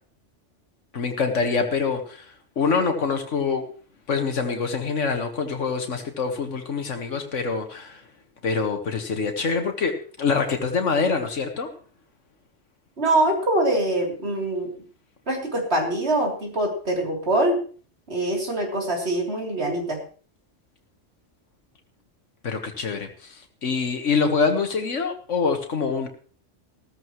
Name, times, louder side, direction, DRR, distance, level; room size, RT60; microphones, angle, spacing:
voice 1, 0.9-2.3 2.6-3.7 4.1-8.0 8.4-11.7 22.4-26.1, left 5 dB, 90° left, 5 dB, 1.8 m, -25 dB
voice 2, 13.0-14.7 15.3-17.6 18.1-20.0, right 1 dB, 60° right, 0 dB, 3.7 m, -24 dB
16.0 x 14.0 x 3.1 m, 0.42 s
omnidirectional pair, 1.2 m